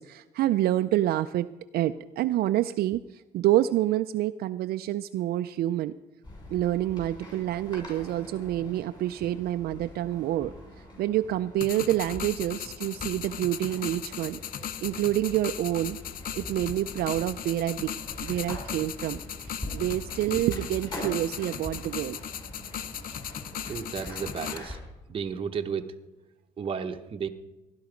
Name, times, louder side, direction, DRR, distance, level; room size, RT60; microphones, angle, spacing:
voice 1, 0.0-1.5 1.7-3.0 3.3-5.9 6.5-10.5 11.0-14.4 14.8-16.0 16.4-17.9 18.2-22.2, right 13 dB, 65° right, 9 dB, 0.4 m, -27 dB
sound 1, 6.2-24.8, left 1 dB, 25° left, 6.5 m, -43 dB
sound 2, 11.6-24.6, left 9 dB, 55° left, 0.7 m, -38 dB
voice 2, 23.6-24.8 25.1-25.9 26.6-27.3, right 6 dB, 30° right, 5 dB, 0.9 m, -33 dB
16.0 x 11.5 x 5.1 m, 1.0 s
cardioid pair, 110°, 17 cm